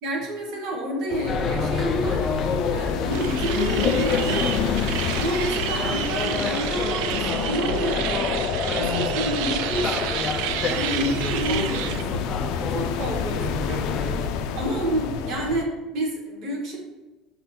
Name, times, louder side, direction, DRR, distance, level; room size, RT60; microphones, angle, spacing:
voice 1, 0.0-2.3 2.7-4.6 5.2-10.2 10.6-13.8 14.2-14.3 14.5-16.8, right 1 dB, 55° right, 0 dB, 1.7 m, -29 dB
sound 1, 1.1-15.6, left 7 dB, 70° left, 0.5 m, -30 dB
sound 2, 1.3-14.3, left 4 dB, 30° left, 0.6 m, -29 dB
sound 3, 3.1-12.0, right 10 dB, 75° right, 0.4 m, -30 dB
6.0 x 4.1 x 4.4 m, 1.2 s
cardioid pair, 155°, 0 cm